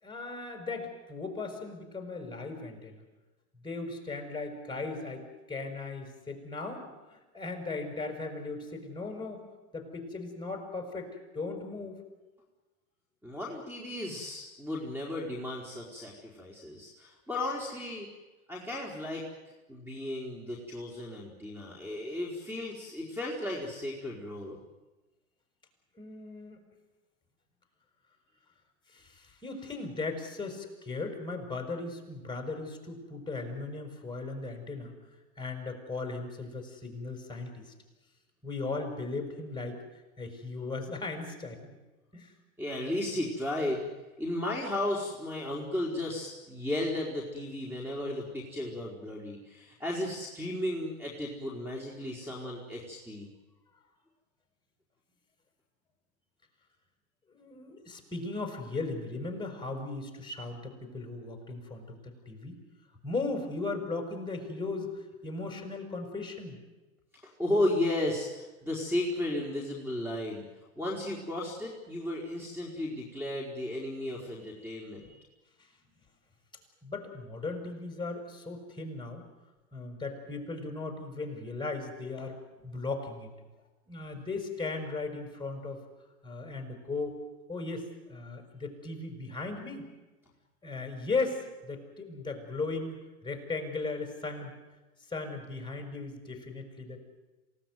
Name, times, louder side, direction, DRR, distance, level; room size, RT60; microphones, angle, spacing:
voice 1, 0.0-3.0 3.6-9.4 9.7-12.0 26.0-26.6 28.9-34.9 35.4-37.7 38.4-39.8 40.2-41.7 42.1-42.3 57.3-62.6 63.0-66.6 75.6-75.7 76.8-79.3 79.7-83.3 83.9-85.8 86.2-87.2 87.5-89.9 90.6-94.5 95.1-97.0, left 3 dB, 10° left, 5 dB, 6.0 m, -37 dB
voice 2, 13.2-18.1 18.5-19.2 19.7-24.6 42.6-43.8 44.2-53.3 67.1-70.4 70.8-75.3, left 1 dB, 5° right, -2 dB, 4.5 m, -34 dB
28.0 x 18.0 x 9.5 m, 1.1 s
hypercardioid pair, 105°, 43 cm